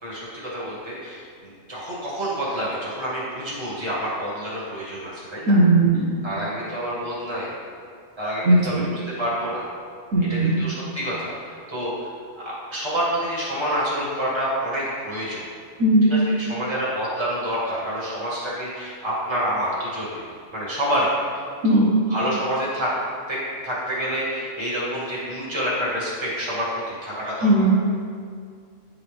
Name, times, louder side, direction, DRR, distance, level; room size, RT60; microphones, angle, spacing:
voice 1, 0.0-5.6 6.2-7.5 8.2-8.8 9.2-9.6 10.3-12.1 12.4-15.5 16.1-20.2 20.5-21.1 21.7-21.8 22.1-22.9 23.3-23.4 23.6-27.7, equal, 20° right, -7 dB, 1.8 m, -28 dB
voice 2, 5.5-6.1 8.4-8.9 10.1-10.6 15.8-16.1 21.6-22.0 27.4-27.7, right 1 dB, 90° right, -3 dB, 1.3 m, -17 dB
9.5 x 3.7 x 3.4 m, 2.1 s
omnidirectional pair, 1.4 m